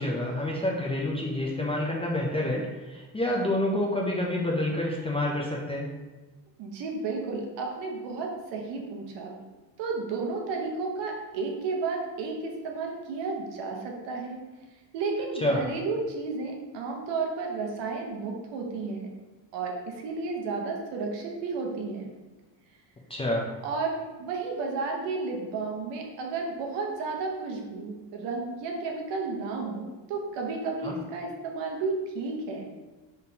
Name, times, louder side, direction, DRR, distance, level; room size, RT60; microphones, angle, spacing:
voice 1, 0.0-5.9 15.4-15.6 23.1-23.5 30.8-30.9, left 1 dB, 15° left, -3 dB, 0.4 m, -28 dB
voice 2, 6.6-9.4 9.8-14.4 14.9-19.1 19.5-22.1 23.6-32.7, right 4 dB, 65° right, 1 dB, 1.0 m, -32 dB
4.0 x 3.6 x 2.7 m, 1.2 s
cardioid pair, 105°, 46 cm